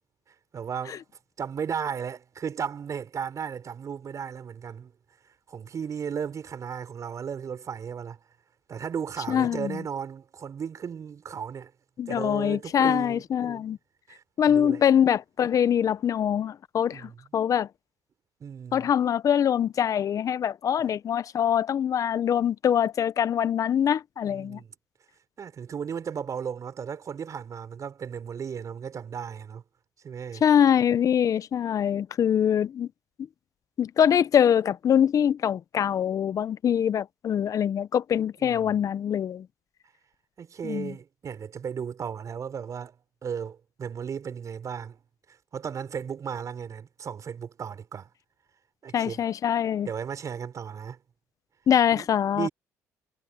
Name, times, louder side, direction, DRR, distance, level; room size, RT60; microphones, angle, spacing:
voice 1, 0.5-1.0 1.4-4.9 5.5-8.2 8.7-11.7 12.1-13.6 14.1-14.9 16.9-17.2 18.4-18.9 24.2-24.7 25.4-29.6 30.0-30.4 38.4-38.8 40.4-43.0 43.2-45.0 45.5-48.1 48.8-49.3 49.9-51.0 51.9-52.1 52.3-52.5, right 7 dB, 50° right, 5.1 m, -35 dB
voice 2, 9.3-9.8 12.0-13.8 14.4-17.7 18.7-24.6 30.4-32.9 33.8-39.4 40.6-40.9 48.9-49.9 51.7-52.5, left 9 dB, 50° left, 0.9 m, -24 dB
supercardioid pair, 65°, 7 cm